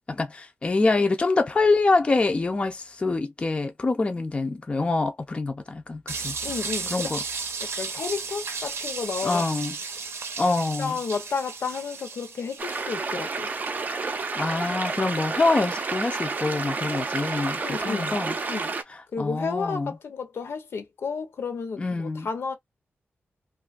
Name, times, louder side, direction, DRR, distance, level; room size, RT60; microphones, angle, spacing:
voice 1, 0.1-6.3 6.9-7.2 9.2-9.7 10.4-11.0 14.4-17.6 17.8-18.4 18.9-20.0 21.8-22.3, left 3 dB, 25° left, 0.4 m, -25 dB
sound 1, 6.1-12.9, right 5 dB, 85° right, 0.6 m, -34 dB
voice 2, 6.4-7.1 7.6-9.4 10.8-13.5 17.6-18.2 18.5-18.7 19.1-22.6, left 5 dB, 75° left, 0.7 m, -32 dB
sound 2, 12.6-18.8, right 4 dB, 40° right, 0.4 m, -30 dB
2.6 x 2.3 x 2.3 m
wide cardioid pair, 135°, 4 cm